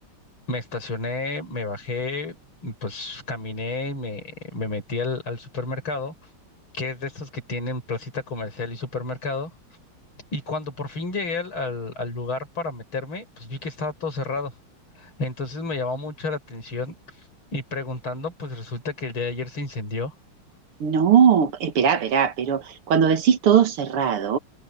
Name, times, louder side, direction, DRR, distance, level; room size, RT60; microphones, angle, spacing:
voice 1, 0.5-2.4 2.6-6.1 6.7-9.5 10.3-14.5 15.0-17.3 17.5-20.1, left 3 dB, 70° left, 7.2 m, -31 dB
voice 2, 20.8-24.4, right 8 dB, 90° right, 2.5 m, -19 dB
omnidirectional pair, 2.4 m